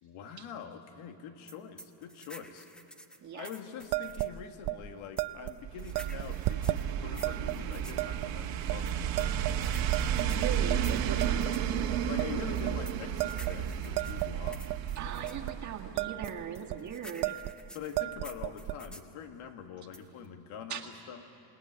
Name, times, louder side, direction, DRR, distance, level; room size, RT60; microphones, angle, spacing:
voice 1, 0.0-2.7 3.3-9.7 11.4-11.6 12.1-14.7 17.7-20.8 21.1-21.2, left 7 dB, 80° left, 6 dB, 2.0 m, -44 dB
sound 1, 1.5-4.4 5.2-8.0 8.9-11.7 12.5-15.4 16.2-19.1 19.9-20.3, equal, ahead, 0.7 m, -50 dB
sound 2, 3.9-4.3 4.6-4.8 5.2-5.5 5.9-6.8 7.2-7.6 8.0-8.3 8.7-8.8 9.2-9.6 9.9-10.8 11.2-11.6 11.9-12.3 12.6-12.8 13.2-14.8 15.2-15.5 15.8-16.3 16.6-16.8 17.2-17.6 17.8-18.8, right 18 dB, 55° right, 0.6 m, -33 dB
sound 3, 5.6-16.0 16.3-16.4, right 9 dB, 75° right, 1.7 m, -32 dB
voice 2, 10.3-11.5 15.0-17.4 20.7-20.8, right 8 dB, 35° right, 1 dB, 1.8 m, -39 dB
27.5 x 19.0 x 9.6 m, 2.9 s
cardioid pair, 180°, 47 cm